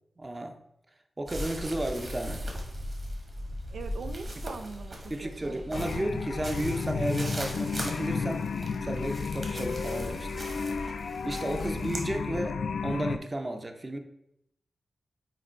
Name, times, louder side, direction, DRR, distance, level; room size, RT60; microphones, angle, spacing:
voice 1, 0.2-0.6 1.2-2.5 5.1-8.5 8.8-10.4 11.2-14.0, right 1 dB, 20° right, 6 dB, 0.6 m, -33 dB
sound 1, 1.3-12.0, equal, 40° right, 1.3 m, -39 dB
voice 2, 3.7-6.1 11.6-11.9, right 4 dB, 85° right, 7 dB, 0.4 m, -43 dB
sound 2, 5.7-13.2, left 5 dB, 75° left, 0.3 m, -32 dB
4.9 x 4.3 x 4.4 m, 0.78 s
wide cardioid pair, 130°, 0 cm